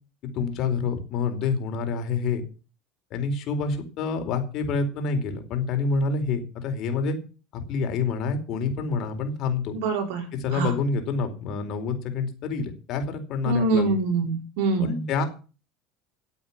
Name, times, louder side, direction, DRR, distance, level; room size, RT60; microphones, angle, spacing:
voice 1, 0.3-2.4 3.1-7.2 7.5-9.8 10.4-13.9 14.8-15.2, left 4 dB, 55° left, 6 dB, 4.4 m, -27 dB
voice 2, 9.7-10.7 13.4-15.0, right 3 dB, 75° right, 4 dB, 4.8 m, -25 dB
14.0 x 8.5 x 7.4 m, 0.35 s
supercardioid pair, 125°, 0 cm